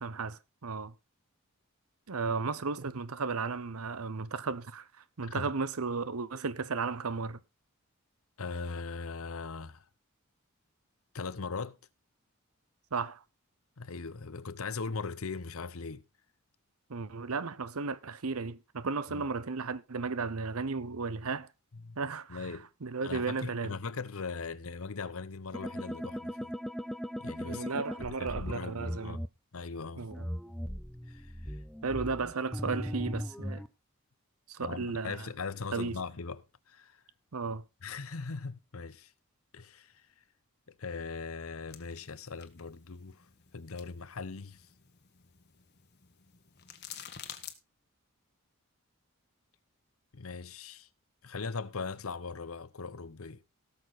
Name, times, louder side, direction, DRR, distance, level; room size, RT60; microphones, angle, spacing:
voice 1, 0.0-0.9 2.1-4.9 5.2-7.4 12.9-13.2 16.9-21.5 22.0-22.5 22.8-23.7 27.4-29.2 30.0-30.2 31.8-33.6 34.5-35.3 35.7-36.0 37.3-37.6, right 4 dB, 80° right, 0.8 m, -34 dB
voice 2, 8.4-9.9 11.1-11.8 13.8-16.0 19.1-19.2 21.7-22.0 22.3-22.7 23.0-26.5 27.2-27.7 28.0-29.2 29.5-30.1 31.1-31.6 34.6-37.0 37.8-39.1 39.5-40.1 40.7-43.3 43.5-44.7 50.1-50.9 51.2-53.4, left 4 dB, 75° left, 0.8 m, -40 dB
sound 1, 25.5-29.3 30.1-33.7, equal, ahead, 0.5 m, -38 dB
sound 2, 41.7-47.5, left 9 dB, 50° left, 1.4 m, -50 dB
17.5 x 6.8 x 4.0 m
head